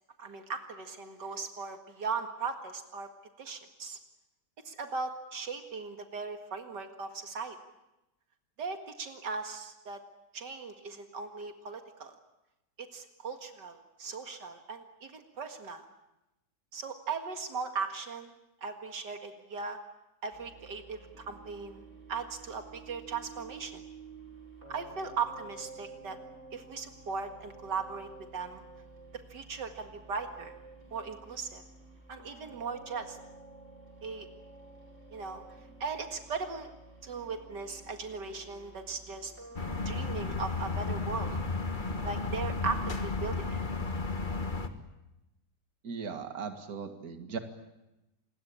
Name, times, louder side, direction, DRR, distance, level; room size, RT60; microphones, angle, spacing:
voice 1, 0.2-3.1 3.4-4.0 4.7-7.6 8.6-10.0 10.3-12.2 12.8-15.8 16.7-18.3 18.6-19.8 20.2-21.8 22.1-23.8 24.7-26.2 26.5-28.6 29.3-30.5 30.9-31.6 32.1-33.2 34.0-34.3 35.1-35.4 35.8-36.7 37.0-39.3 39.9-41.4 42.0-43.6, right 5 dB, 85° right, 6 dB, 2.5 m, -38 dB
sound 1, 20.3-39.8, right 3 dB, 40° right, 8.2 m, -51 dB
sound 2, 39.6-44.7, left 3 dB, 30° left, 1.7 m, -33 dB
voice 2, 45.8-47.4, right 6 dB, 60° right, 7 dB, 2.4 m, -38 dB
27.5 x 21.0 x 8.7 m, 0.94 s
omnidirectional pair, 1.8 m